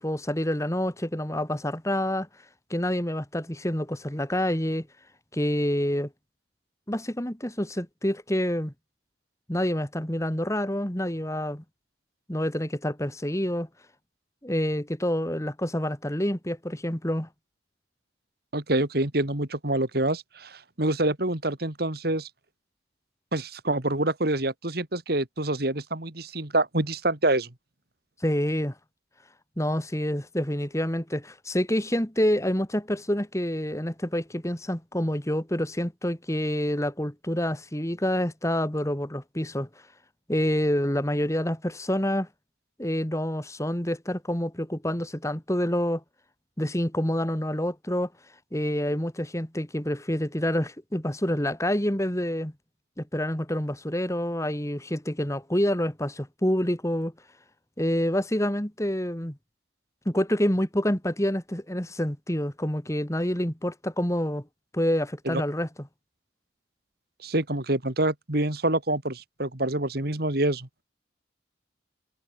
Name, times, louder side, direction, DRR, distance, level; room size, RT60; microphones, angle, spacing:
voice 1, 0.0-2.3 2.7-4.9 5.3-6.1 6.9-8.7 9.5-11.6 12.3-13.7 14.4-17.3 28.2-28.7 29.6-39.7 40.3-42.3 42.8-46.0 46.6-48.1 48.5-52.5 53.0-57.1 57.8-59.4 60.1-64.4 64.7-65.9, equal, 15° left, 2.2 m, -27 dB
voice 2, 18.5-22.3 23.3-27.5 65.3-65.4 67.2-70.7, right 1 dB, 55° right, 2.5 m, -26 dB
head